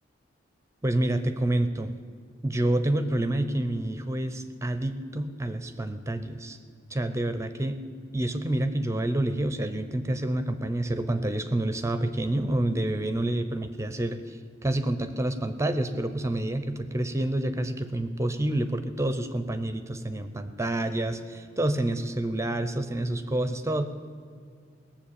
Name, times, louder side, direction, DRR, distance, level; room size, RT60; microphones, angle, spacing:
voice 1, 0.8-1.9 2.4-6.6 6.9-7.8 8.1-23.9, right 1 dB, 15° right, 10 dB, 0.6 m, -28 dB
18.0 x 7.4 x 8.6 m, 2.3 s
head